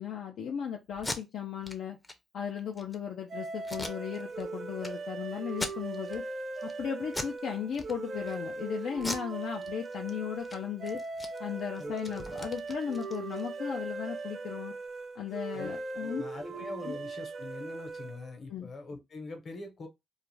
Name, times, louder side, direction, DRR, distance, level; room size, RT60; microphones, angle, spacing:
voice 1, 0.0-2.0 2.3-6.2 6.6-11.0 11.4-14.7 15.2-16.2 16.5-17.0 18.5-18.7, left 8 dB, 70° left, 0.4 m, -36 dB
Packing tape duct tape, 0.9-1.2 1.6-1.8 2.0-2.1 2.6-3.0 3.6-4.4 4.8-4.9 5.5-6.2 6.6-6.8 7.1-7.4 7.7-8.3 9.0-10.1 10.4-10.6 10.8-13.5, left 2 dB, 20° left, 0.5 m, -39 dB
sound 1, 3.3-18.4, right 3 dB, 50° right, 0.6 m, -39 dB
voice 2, 16.0-19.9, left 2 dB, 45° left, 0.9 m, -43 dB
2.3 x 2.1 x 3.2 m
cardioid pair, 90°, 0 cm